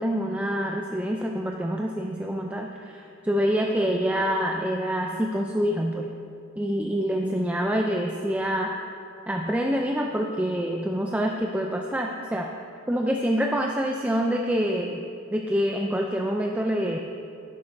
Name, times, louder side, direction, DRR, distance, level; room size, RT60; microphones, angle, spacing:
voice 1, 0.0-6.1 6.6-8.8 9.3-12.5 12.9-15.0 15.3-17.0, equal, 5° right, 1 dB, 0.4 m, -26 dB
11.5 x 10.5 x 2.6 m, 2.6 s
head